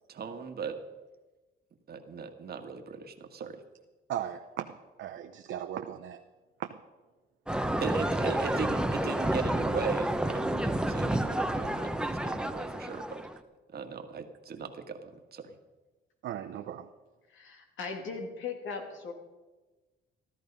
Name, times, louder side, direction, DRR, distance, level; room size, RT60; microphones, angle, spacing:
voice 1, 0.1-0.8 1.9-3.6 7.8-12.0 12.2-13.2 13.7-15.5, right 5 dB, 50° right, 6 dB, 1.7 m, -38 dB
voice 2, 4.1-4.7 5.0-6.2 6.6-6.8 16.2-16.9, right 10 dB, 75° right, 6 dB, 0.8 m, -37 dB
sound 1, 7.5-13.4, right 1 dB, 5° right, 0.9 m, -30 dB
voice 3, 17.3-19.1, left 5 dB, 80° left, 2 dB, 2.8 m, -38 dB
14.5 x 13.0 x 5.3 m, 1.2 s
cardioid pair, 90°, 20 cm